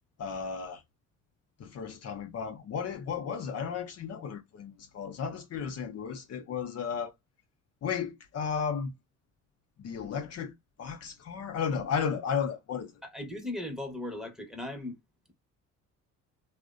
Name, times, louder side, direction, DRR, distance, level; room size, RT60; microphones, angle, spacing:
voice 1, 0.2-0.8 1.6-7.1 7.8-8.9 9.8-10.5 10.8-13.0, left 6 dB, 55° left, 0.6 m, -34 dB
voice 2, 13.0-15.0, left 1 dB, ahead, 0.8 m, -37 dB
2.6 x 2.1 x 2.4 m
cardioid pair, 90°, 30 cm